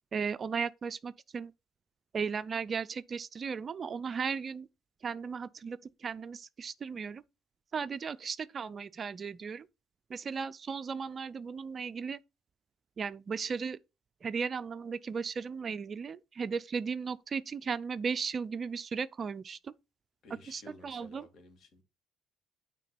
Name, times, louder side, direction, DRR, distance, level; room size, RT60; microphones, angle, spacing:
voice 1, 0.1-1.5 2.1-4.7 5.0-7.2 7.7-9.7 10.1-12.2 13.0-13.8 14.2-19.7 20.5-21.3, right 6 dB, 35° right, 0.4 m, -36 dB
voice 2, 20.2-21.8, left 2 dB, 55° left, 2.3 m, -53 dB
9.0 x 3.6 x 4.3 m
cardioid pair, 95°, 0 cm